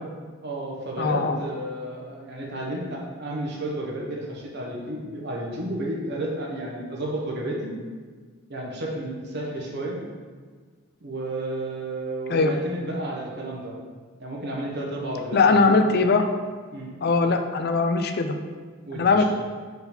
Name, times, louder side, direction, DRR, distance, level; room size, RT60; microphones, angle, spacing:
voice 1, 0.4-7.7 8.5-10.0 11.0-13.7 14.2-15.8 16.7-16.9 18.9-19.2, right 1 dB, 50° right, -2 dB, 1.1 m, -32 dB
voice 2, 1.0-1.4 12.3-12.5 15.3-16.3 17.0-18.4 18.9-19.2, left 4 dB, 50° left, 6 dB, 0.4 m, -20 dB
4.8 x 4.0 x 5.1 m, 1.5 s
head